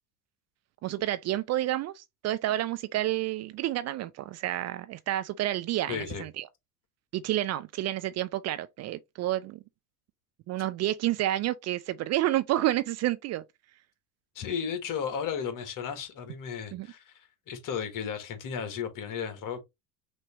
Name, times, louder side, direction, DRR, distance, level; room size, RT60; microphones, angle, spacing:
voice 1, 0.8-6.5 7.1-9.6 10.5-13.4 16.7-16.9, right 14 dB, 35° right, 0.4 m, -29 dB
voice 2, 5.9-6.2 14.4-19.6, left 7 dB, 45° left, 1.6 m, -34 dB
6.1 x 2.9 x 2.8 m
hypercardioid pair, 75°, 45 cm